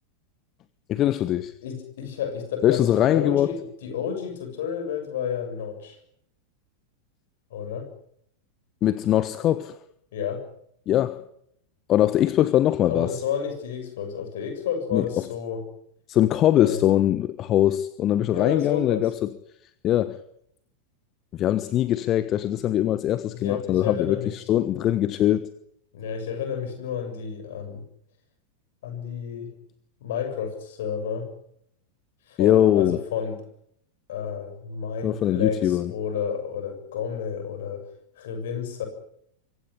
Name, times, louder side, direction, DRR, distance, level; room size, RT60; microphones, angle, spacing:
voice 1, 0.9-1.5 2.6-3.5 8.8-9.7 10.9-11.2 11.9-13.2 14.9-15.0 16.1-19.3 19.8-20.2 21.3-25.5 32.4-33.0 35.0-35.9, left 12 dB, 30° left, 1.2 m, -22 dB
voice 2, 1.6-6.0 7.5-7.9 10.1-10.4 12.9-15.7 16.6-16.8 18.3-19.1 23.3-24.3 25.9-27.8 28.8-29.5 30.0-31.3 32.3-33.4 34.1-37.8 38.2-38.9, left 7 dB, 55° left, 7.1 m, -31 dB
24.5 x 17.0 x 9.8 m
figure-of-eight pair, 90°, 0 cm